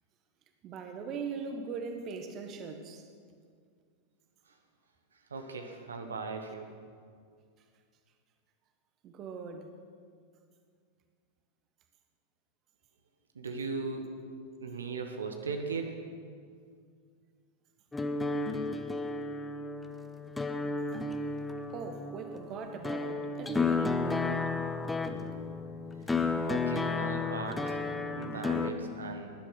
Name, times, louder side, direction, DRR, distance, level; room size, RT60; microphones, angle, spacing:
voice 1, 0.6-3.0 9.0-9.7 21.7-24.5, right 5 dB, 35° right, 6 dB, 1.4 m, -40 dB
voice 2, 5.3-6.7 13.3-14.1 14.6-16.0 26.1-27.8 28.1-29.3, right 4 dB, 70° right, 5 dB, 1.3 m, -38 dB
sound 1, 17.9-28.7, left 3 dB, 10° left, 0.9 m, -33 dB
19.0 x 11.5 x 5.9 m, 2.1 s
figure-of-eight pair, 90°, 0 cm